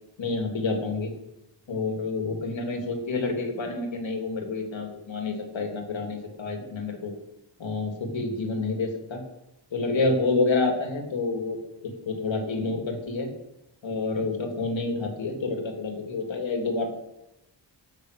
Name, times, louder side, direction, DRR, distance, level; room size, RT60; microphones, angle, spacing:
voice 1, 0.2-1.1 1.7-7.1 7.6-9.2 9.7-11.6 12.1-13.3 13.8-16.9, left 3 dB, 85° left, 3 dB, 2.8 m, -28 dB
15.5 x 6.5 x 6.7 m, 0.88 s
wide cardioid pair, 105°, 45 cm